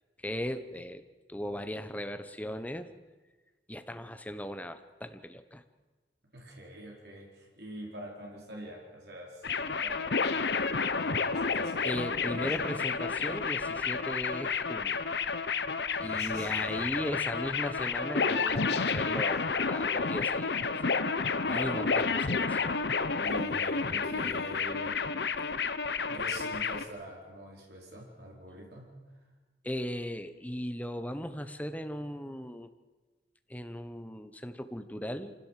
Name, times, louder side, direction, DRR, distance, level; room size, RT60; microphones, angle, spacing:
voice 1, 0.2-1.0 1.3-2.9 3.7-5.6 11.8-15.0 16.0-20.6 21.4-22.8 29.6-32.7 33.5-35.3, equal, 10° left, 9 dB, 1.1 m, -37 dB
voice 2, 6.3-9.5 9.8-10.6 10.9-12.7 16.0-17.2 21.5-22.1 23.2-25.0 26.1-28.9, right 1 dB, 65° right, -2 dB, 4.7 m, -45 dB
sound 1, 9.4-26.8, left 5 dB, 70° left, 0.9 m, -30 dB
26.0 x 16.5 x 7.6 m, 1.3 s
head